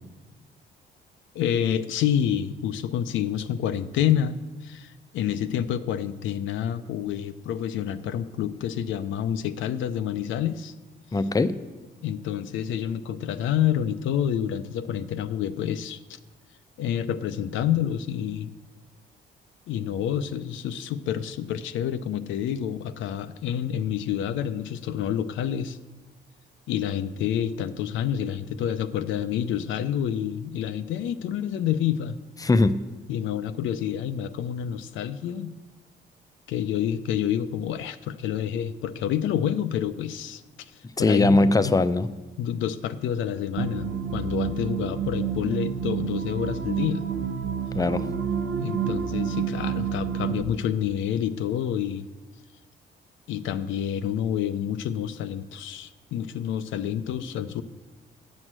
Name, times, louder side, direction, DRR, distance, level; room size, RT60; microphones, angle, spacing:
voice 1, 1.3-10.7 12.0-16.2 16.8-18.5 19.7-25.8 26.7-32.2 33.1-35.5 36.5-40.4 41.0-41.7 42.4-47.0 48.6-52.1 53.3-57.6, left 9 dB, 85° left, 11 dB, 0.5 m, -28 dB
voice 2, 11.1-11.5 32.4-32.8 41.0-42.1 47.7-48.0, left 2 dB, 20° left, 12 dB, 0.5 m, -20 dB
sound 1, 43.6-50.4, right 7 dB, 70° right, 0.8 m, -29 dB
8.9 x 6.3 x 7.4 m, 1.2 s
cardioid pair, 95°, 19 cm